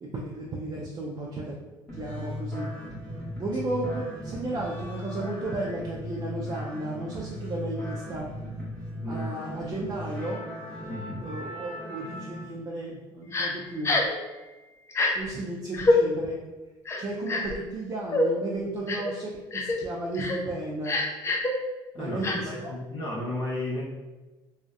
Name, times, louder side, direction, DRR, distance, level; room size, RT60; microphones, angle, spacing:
voice 1, 0.0-1.6 1.9-2.7 3.4-8.3 9.0-10.5 11.2-14.0 15.1-16.4 17.0-21.0 22.0-22.7, right 2 dB, 35° right, -3 dB, 0.4 m, -34 dB
sound 1, 1.9-12.4, equal, 10° left, 0.9 m, -37 dB
voice 2, 10.9-11.3 21.9-23.8, left 1 dB, 55° left, -6 dB, 0.7 m, -33 dB
Crying sobbing, 13.3-13.5 13.8-14.2 14.9-15.1 15.7-16.0 16.8-17.6 18.1-18.3 18.9-19.1 19.5-19.8 20.1-20.4 20.8-21.5 22.2-22.4, left 2 dB, 25° left, 0.4 m, -25 dB
2.6 x 2.0 x 2.3 m, 1.2 s
cardioid pair, 90°, 10 cm